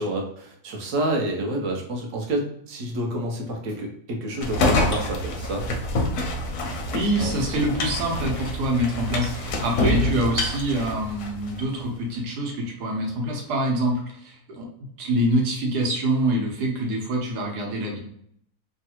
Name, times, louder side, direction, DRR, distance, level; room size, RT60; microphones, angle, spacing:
voice 1, 0.0-5.7, right 1 dB, 60° right, 1 dB, 1.0 m, -28 dB
sound 1, 4.4-11.6, left 2 dB, 65° left, 0.8 m, -26 dB
voice 2, 6.9-14.7 15.0-18.0, right 1 dB, 85° right, 0 dB, 1.4 m, -25 dB
3.2 x 2.3 x 2.9 m, 0.68 s
omnidirectional pair, 1.7 m